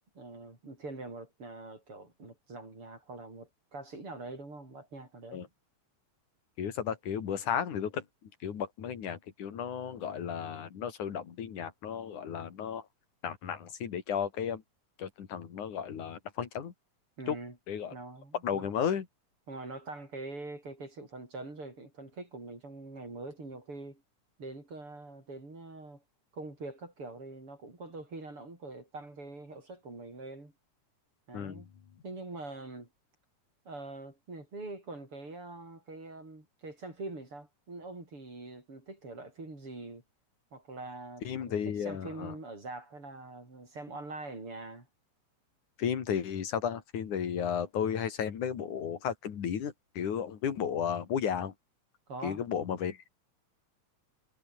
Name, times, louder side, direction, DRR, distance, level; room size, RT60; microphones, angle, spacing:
voice 1, 0.1-5.5 17.2-17.6 17.9-18.7 19.5-24.0 24.4-26.0 26.3-30.5 31.3-31.7 32.0-32.9 33.6-40.0 40.5-44.9 52.1-52.4, right 2 dB, 45° right, 8.1 m, -44 dB
voice 2, 6.6-8.1 8.4-12.8 13.2-14.6 15.0-16.7 17.3-17.4 17.7-17.9 18.4-19.1 31.3-31.6 41.3-42.4 45.8-51.5 52.2-53.1, left 8 dB, 85° left, 3.9 m, -34 dB
omnidirectional pair, 3.4 m